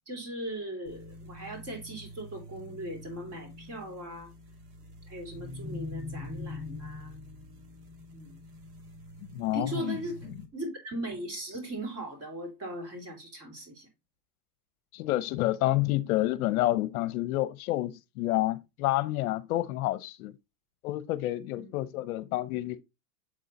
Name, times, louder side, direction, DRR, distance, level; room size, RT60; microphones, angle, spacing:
voice 1, 0.1-4.3 5.1-7.2 8.1-8.4 9.5-13.9 21.5-21.7, right 1 dB, 30° right, 3.2 m, -39 dB
sound 1, 0.9-10.5, left 2 dB, 65° right, 2.0 m, -44 dB
voice 2, 9.3-10.0 14.9-20.3 20.8-22.8, left 16 dB, 65° left, 0.7 m, -29 dB
7.5 x 3.8 x 4.0 m
supercardioid pair, 145°, 47 cm